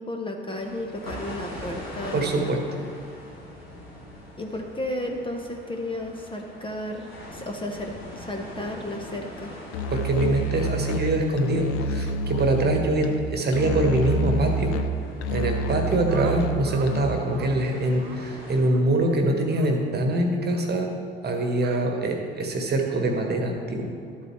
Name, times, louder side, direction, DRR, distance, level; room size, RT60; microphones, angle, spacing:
voice 1, 0.0-2.8 4.4-9.5, left 1 dB, 15° left, 2 dB, 1.0 m, -33 dB
sound 1, 0.5-18.6, equal, 85° left, 1.9 m, -43 dB
voice 2, 2.1-2.6 9.9-14.7 15.3-20.9 21.2-23.9, right 1 dB, 35° right, 3 dB, 1.4 m, -24 dB
Musical instrument, 9.7-17.3, right 1 dB, 55° left, 0.6 m, -28 dB
sound 2, 16.1-16.9 17.2-17.5 18.0-18.2 18.6-18.9 19.5-19.7 20.5-20.7 21.6-21.8, right 8 dB, 65° right, 0.9 m, -43 dB
12.5 x 8.1 x 3.2 m, 2.4 s
figure-of-eight pair, 55°, 29 cm